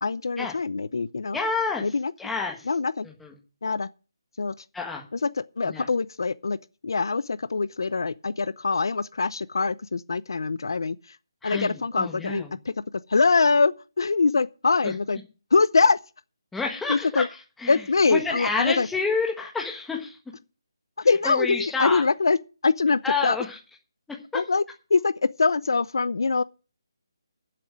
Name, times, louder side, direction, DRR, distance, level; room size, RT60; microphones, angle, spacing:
voice 1, 0.0-1.4 1.8-2.1 2.7-3.1 3.6-3.9 4.4-4.5 5.1-5.3 5.6-6.6 6.8-11.0 11.4-12.7 13.1-15.2 15.5-16.0 16.9-17.3 17.7-18.9 21.0-22.4 22.6-23.4 24.3-24.6 24.9-26.4, left 4 dB, 60° left, 0.6 m, -23 dB
voice 2, 1.3-1.8 2.2-2.6 3.0-3.3 4.7-5.0 5.6-5.9 11.4-12.5 14.8-14.9 16.5-17.3 17.6-20.2 21.2-22.0 23.0-23.6, left 4 dB, 5° left, 1.4 m, -29 dB
9.0 x 7.6 x 8.6 m
hypercardioid pair, 175°, 3 cm